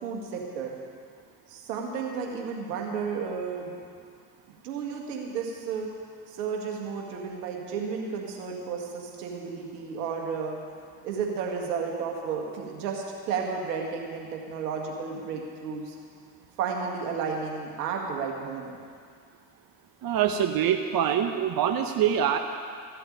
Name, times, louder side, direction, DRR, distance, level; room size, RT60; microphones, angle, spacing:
voice 1, 0.0-0.8 1.5-3.7 4.6-5.9 6.3-10.6 11.0-16.0 16.6-18.8, right 5 dB, 80° right, 1 dB, 2.1 m, -32 dB
voice 2, 20.0-22.4, right 9 dB, 50° right, 6 dB, 1.0 m, -24 dB
15.0 x 7.8 x 9.0 m, 2.1 s
hypercardioid pair, 55°, 47 cm